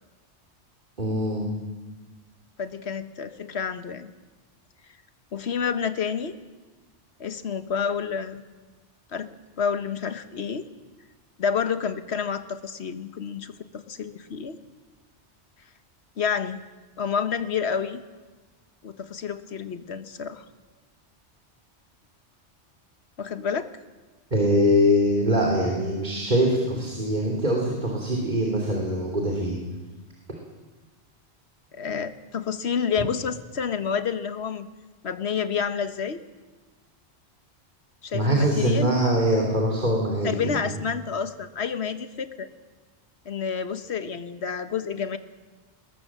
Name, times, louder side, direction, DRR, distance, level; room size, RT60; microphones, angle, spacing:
voice 1, 1.0-1.5 24.3-29.5 38.1-40.7, equal, 40° right, -1 dB, 3.4 m, -23 dB
voice 2, 2.6-4.1 5.3-6.4 7.2-8.4 9.1-10.7 11.4-14.6 16.2-16.6 17.0-18.0 18.8-20.4 23.2-23.7 31.7-34.7 35.0-36.2 38.0-39.0 40.2-42.5 43.2-45.2, left 6 dB, 65° left, 10 dB, 1.4 m, -29 dB
20.5 x 20.5 x 7.5 m, 1.3 s
omnidirectional pair, 1.2 m